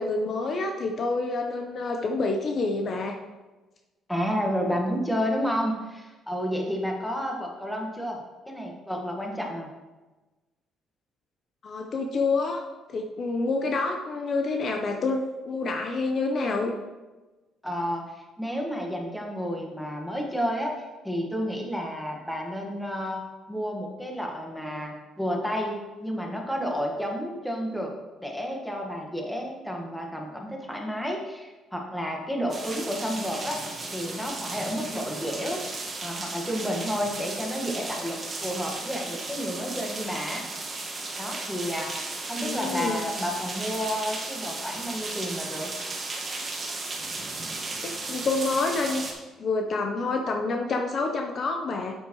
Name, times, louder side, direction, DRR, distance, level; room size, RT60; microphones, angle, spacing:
voice 1, 0.0-3.2 11.6-12.6 12.9-16.7 42.3-43.0 47.8-49.0 49.4-51.9, left 3 dB, 45° left, 3 dB, 0.8 m, -28 dB
voice 2, 4.1-9.7 17.6-23.2 23.5-27.9 28.2-33.6 33.9-35.6 36.0-40.4 41.2-41.9 42.3-45.7, equal, 5° left, 0 dB, 1.5 m, -31 dB
sound 1, 32.5-49.1, right 3 dB, 30° right, 1.6 m, -35 dB
8.5 x 8.0 x 3.1 m, 1.2 s
cardioid pair, 110°, 0 cm